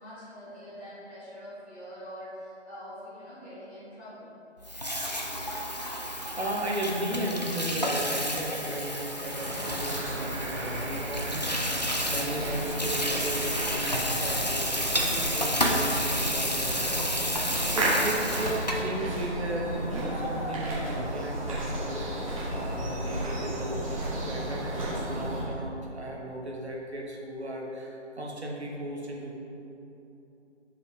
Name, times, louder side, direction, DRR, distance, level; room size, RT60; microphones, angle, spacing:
voice 1, 0.0-4.3, equal, 10° left, -17 dB, 1.5 m, -44 dB
Water tap faucet / Sink (filling or washing), 4.6-18.9, equal, 35° left, 0.5 m, -31 dB
voice 2, 5.9-22.1 22.5-29.4, right 1 dB, 65° right, -1 dB, 1.0 m, -35 dB
sound 1, 9.3-25.4, right 1 dB, 30° right, 1.5 m, -33 dB
6.2 x 4.9 x 3.7 m, 2.9 s
figure-of-eight pair, 160°, 36 cm